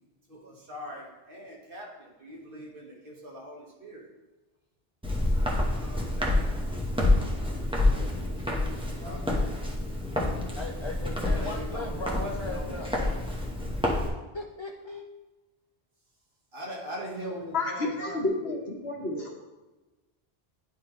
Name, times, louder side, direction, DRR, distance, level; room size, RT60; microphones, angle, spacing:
voice 1, 0.3-4.1 5.7-7.6 7.9-8.5 9.0-9.5 9.9-10.0 11.3-13.2 16.5-18.2, equal, 60° right, -2 dB, 1.6 m, -42 dB
Walk footsteps, 5.0-14.1, left 1 dB, 5° right, 1.0 m, -28 dB
voice 2, 10.6-13.1 14.0-14.1 14.3-15.1, left 2 dB, 50° left, 2 dB, 0.3 m, -38 dB
voice 3, 17.5-19.4, left 2 dB, 80° left, -2 dB, 1.6 m, -30 dB
10.5 x 3.6 x 3.1 m, 1.1 s
omnidirectional pair, 1.0 m